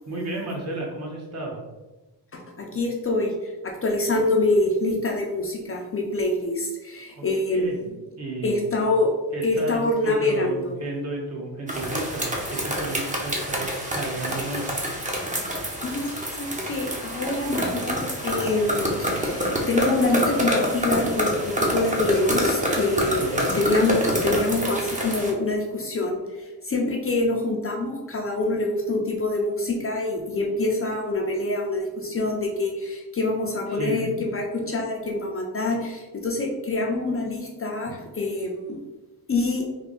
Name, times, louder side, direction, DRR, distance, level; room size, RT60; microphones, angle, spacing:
voice 1, 0.1-1.6 7.1-7.2 7.5-7.8 8.2-8.6 9.3-14.8 23.2-23.5 33.7-34.1, right 2 dB, 40° right, -2 dB, 1.1 m, -33 dB
voice 2, 2.3-7.9 8.4-9.1 9.4-10.8 15.8-23.3 23.5-38.8 39.3-39.6, left 2 dB, 30° left, 0 dB, 0.6 m, -25 dB
sound 1, 11.7-25.3, equal, 20° right, 0.9 m, -27 dB
3.4 x 2.3 x 3.8 m, 1.1 s
cardioid pair, 80°, 42 cm